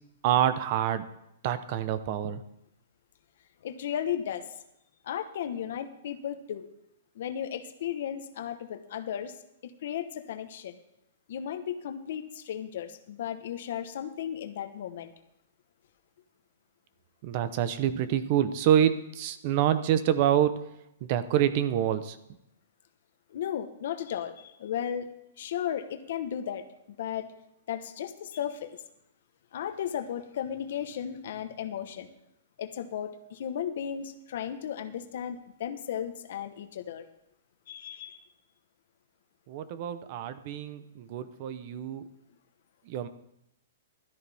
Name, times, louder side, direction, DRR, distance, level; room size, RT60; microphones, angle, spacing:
voice 1, 0.2-1.0 1.4-2.4 17.2-20.6 21.0-22.2 39.5-42.0 42.9-43.1, right 10 dB, 35° right, 13 dB, 0.8 m, -27 dB
voice 2, 3.6-4.5 5.0-6.7 7.1-9.3 9.6-10.8 11.3-15.1 23.3-25.1 25.4-26.6 27.0-27.3 27.7-28.8 29.5-32.1 32.6-37.0 37.7-38.2, left 9 dB, 55° left, 9 dB, 1.2 m, -35 dB
16.5 x 13.0 x 3.5 m, 0.82 s
hypercardioid pair, 170°, 0 cm